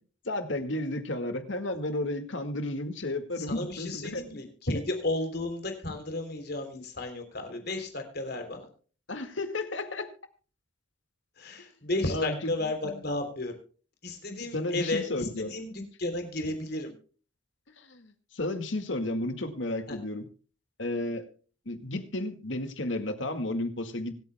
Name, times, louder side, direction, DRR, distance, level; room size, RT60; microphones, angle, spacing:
voice 1, 0.3-4.2 9.1-10.1 12.1-12.4 12.8-13.0 14.5-15.5 17.8-20.2 20.8-21.2 21.7-24.2, left 1 dB, 70° left, 7 dB, 2.0 m, -32 dB
voice 2, 3.4-8.6 11.4-13.5 14.0-16.9 19.9-20.0, left 2 dB, 55° left, 5 dB, 3.3 m, -33 dB
25.0 x 8.9 x 2.2 m, 0.40 s
head